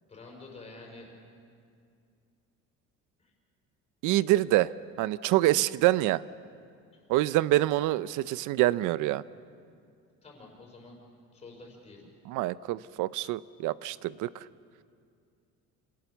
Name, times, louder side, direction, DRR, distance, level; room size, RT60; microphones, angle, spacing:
voice 1, 0.1-1.1 3.2-3.3 6.9-7.0 10.2-11.0 11.3-12.1, left 3 dB, 20° left, 0 dB, 5.1 m, -48 dB
voice 2, 4.0-4.7 5.0-6.2 7.1-9.2 12.3-14.3, right 16 dB, 80° right, 18 dB, 0.6 m, -26 dB
27.0 x 18.0 x 7.1 m, 2.3 s
cardioid pair, 160°, 30 cm